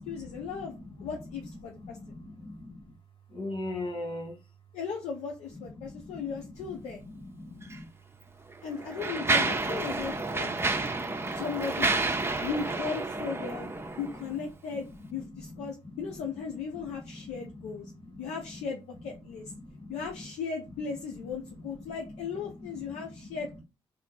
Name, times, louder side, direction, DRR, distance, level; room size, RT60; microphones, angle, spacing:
voice 1, 0.0-2.0 4.7-7.0 8.6-10.6 11.3-12.1 12.4-13.7 14.0-17.9 18.2-19.5 19.9-23.6, left 5 dB, 80° left, 0.7 m, -37 dB
voice 2, 1.8-2.7 3.3-4.4 5.8-6.2 7.1-7.8 9.9-10.0 10.4-11.4 12.3-12.5 13.6-13.7 17.1-17.6 18.1-18.3 19.6-20.0 22.9-23.3, left 2 dB, 55° left, 2.4 m, -41 dB
Mechanisms, 7.6-7.8 8.5-14.3, right 3 dB, 25° right, 0.7 m, -30 dB
4.1 x 2.2 x 4.5 m
supercardioid pair, 55°, 11 cm